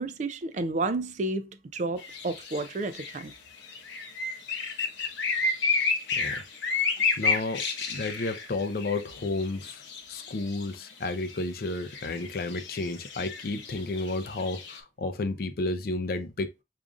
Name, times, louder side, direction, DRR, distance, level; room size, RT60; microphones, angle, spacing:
voice 1, 0.0-3.3, right 2 dB, 40° right, 0.3 m, -31 dB
sound 1, 2.0-14.8, left 4 dB, 85° left, 0.8 m, -31 dB
voice 2, 6.8-16.5, left 2 dB, 55° left, 0.5 m, -32 dB
4.9 x 2.5 x 2.3 m
head